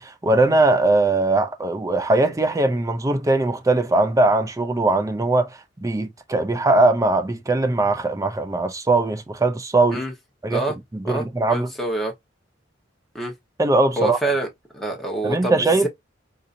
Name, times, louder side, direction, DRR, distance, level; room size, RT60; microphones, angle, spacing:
voice 1, 0.0-10.0 10.4-10.6 10.9-11.7 13.6-14.2 15.2-15.9, right 2 dB, 20° right, 0.4 m, -20 dB
voice 2, 11.0-12.1 13.1-13.3 14.0-14.5 14.7-15.9, right 2 dB, ahead, 1.0 m, -26 dB
3.9 x 2.7 x 2.5 m
head